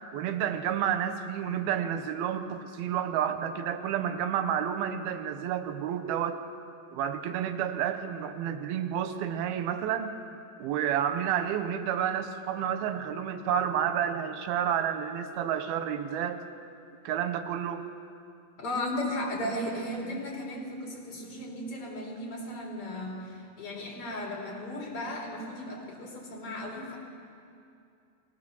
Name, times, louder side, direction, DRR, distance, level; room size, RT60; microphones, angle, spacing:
voice 1, 0.1-6.4 6.9-10.1 10.6-16.4 17.1-17.9, right 9 dB, 90° right, 9 dB, 2.7 m, -30 dB
voice 2, 18.6-27.0, left 1 dB, 40° left, -2 dB, 5.1 m, -35 dB
21.0 x 18.0 x 7.0 m, 2.5 s
omnidirectional pair, 4.2 m